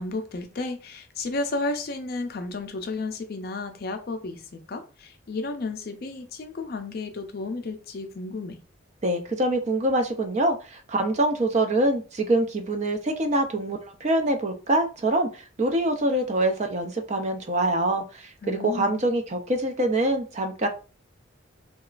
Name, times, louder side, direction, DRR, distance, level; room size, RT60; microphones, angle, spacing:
voice 1, 0.0-8.6 18.4-19.0, left 3 dB, 50° left, 0.4 m, -32 dB
voice 2, 9.0-20.7, right 1 dB, 35° right, 0.4 m, -25 dB
2.9 x 2.3 x 2.3 m
head